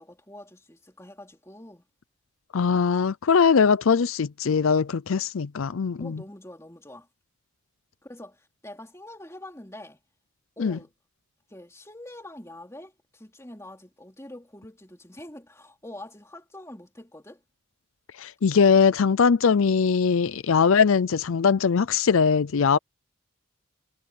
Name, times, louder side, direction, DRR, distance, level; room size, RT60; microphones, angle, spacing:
voice 1, 0.0-1.8 6.0-7.1 8.0-10.0 10.6-10.9 11.5-17.4, left 1 dB, 15° left, 2.9 m, -45 dB
voice 2, 2.5-6.2 10.6-10.8 18.2-22.8, left 6 dB, 75° left, 0.5 m, -21 dB
head